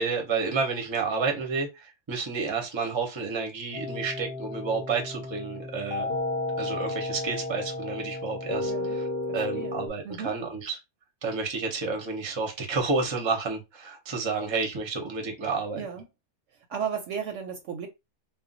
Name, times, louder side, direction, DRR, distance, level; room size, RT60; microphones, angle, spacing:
voice 1, 0.0-6.1 6.6-9.0 9.3-10.8 11.2-15.8, right 4 dB, 30° right, 0.5 m, -30 dB
sound 1, 3.7-9.9, left 2 dB, 50° left, 0.8 m, -33 dB
voice 2, 8.6-9.0 9.3-10.4 15.7-16.0 16.7-17.9, right 7 dB, 70° right, 0.8 m, -35 dB
2.4 x 2.0 x 3.7 m
omnidirectional pair, 1.5 m